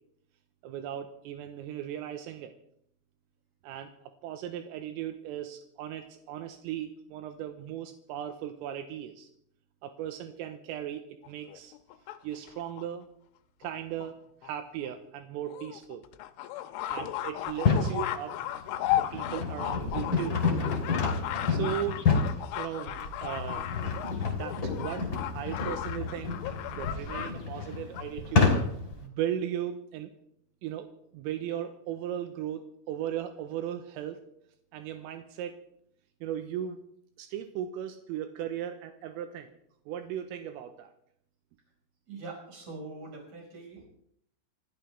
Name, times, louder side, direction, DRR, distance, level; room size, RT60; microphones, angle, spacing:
voice 1, 0.6-2.5 3.6-9.3 9.8-11.7 12.2-13.1 13.6-14.2 14.4-16.0 16.9-18.4 19.0-20.4 21.5-22.1 22.6-23.7 24.4-25.1 25.3-26.4 26.7-28.6 29.0-30.1 30.6-34.2 34.7-35.6 36.2-36.8 37.2-39.6 39.9-40.9, right 10 dB, 85° right, 6 dB, 3.6 m, -37 dB
sound 1, 11.2-12.8 13.6-13.7 14.0-14.1 14.4-14.5 14.8-14.9 15.5-27.3 27.6-28.0, left 13 dB, 80° left, 3.1 m, -35 dB
sound 2, 17.5-18.0 18.6-29.0, left 5 dB, 30° left, 2.9 m, -29 dB
voice 2, 42.1-43.9, right 3 dB, 35° right, 0 dB, 6.1 m, -43 dB
27.0 x 14.0 x 3.5 m, 0.72 s
omnidirectional pair, 6.0 m